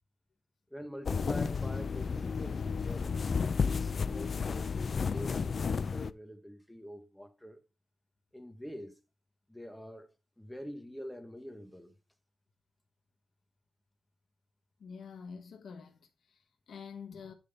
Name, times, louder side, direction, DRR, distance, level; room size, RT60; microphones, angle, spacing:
voice 1, 0.7-3.2 3.5-7.6 8.3-9.0 9.5-11.9, equal, 5° left, 1.0 m, -46 dB
sound 1, 1.1-6.1, left 5 dB, 45° left, 0.4 m, -32 dB
voice 2, 14.8-17.3, left 6 dB, 75° left, 1.3 m, -47 dB
10.0 x 3.6 x 5.4 m
wide cardioid pair, 145°, 0 cm